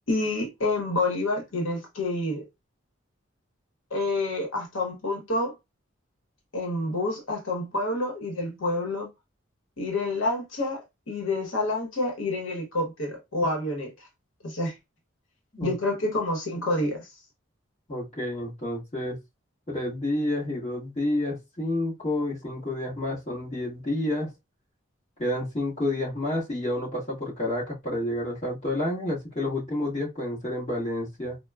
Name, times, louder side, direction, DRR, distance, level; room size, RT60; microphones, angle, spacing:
voice 1, 0.1-2.5 3.9-5.5 6.5-9.1 9.8-14.1 14.4-14.8 15.6-17.1, left 2 dB, 80° left, 1.0 m, -28 dB
voice 2, 17.9-19.2 19.7-24.3 25.2-31.4, left 1 dB, 30° left, 1.5 m, -29 dB
4.3 x 2.1 x 2.3 m
head